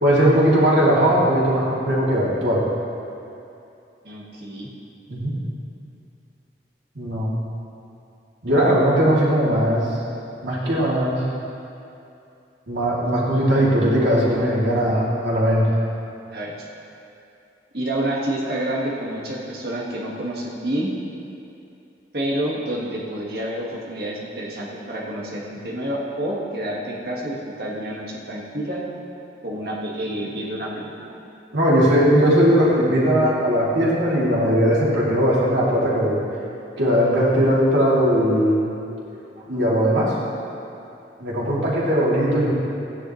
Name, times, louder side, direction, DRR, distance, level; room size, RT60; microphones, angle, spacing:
voice 1, 0.0-2.6 5.1-5.3 6.9-7.3 8.4-9.9 10.4-11.2 12.7-15.7 31.5-36.2 36.8-38.7 39.5-40.1 41.2-42.5, equal, 85° right, -7 dB, 2.9 m, -19 dB
voice 2, 4.0-4.7 16.3-16.5 17.7-20.9 22.1-28.8 29.4-30.9, right 1 dB, 60° right, -4 dB, 1.8 m, -28 dB
15.0 x 9.9 x 3.2 m, 2.7 s
head